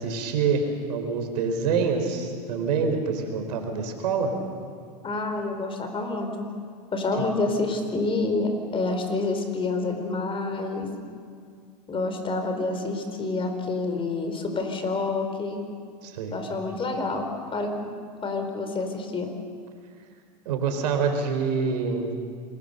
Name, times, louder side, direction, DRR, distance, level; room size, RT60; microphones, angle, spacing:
voice 1, 0.0-4.3 16.0-16.4 20.4-22.1, right 5 dB, 80° right, 5 dB, 4.3 m, -26 dB
voice 2, 5.0-6.5 6.9-10.9 11.9-15.6 16.3-17.9 18.2-19.3, left 3 dB, 25° left, 5 dB, 4.4 m, -28 dB
27.5 x 21.0 x 6.8 m, 2.1 s
hypercardioid pair, 105°, 21 cm